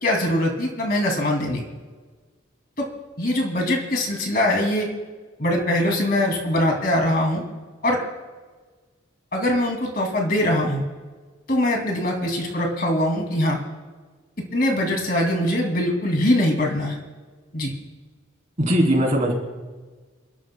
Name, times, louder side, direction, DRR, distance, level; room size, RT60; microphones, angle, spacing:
voice 1, 0.0-1.6 2.8-2.9 3.2-4.9 5.4-7.4 7.8-8.0 9.3-10.8 11.5-13.6 14.5-16.9 17.5-17.7, left 1 dB, 45° left, 1 dB, 2.5 m, -22 dB
voice 2, 18.6-19.3, equal, 35° right, 0 dB, 3.2 m, -19 dB
27.5 x 13.0 x 2.2 m, 1.4 s
head